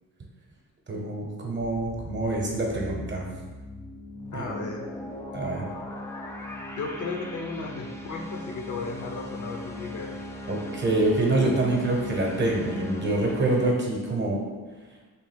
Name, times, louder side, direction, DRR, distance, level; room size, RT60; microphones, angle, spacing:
voice 1, 0.9-3.2 4.3-4.5 5.3-5.7 10.5-14.4, right 2 dB, 30° right, 0 dB, 0.9 m, -26 dB
sound 1, 1.6-13.7, left 1 dB, 10° left, 0.3 m, -38 dB
voice 2, 4.3-4.9 6.8-10.1, left 4 dB, 55° left, 2 dB, 0.6 m, -35 dB
3.3 x 2.7 x 4.3 m, 1.3 s
cardioid pair, 100°, 35 cm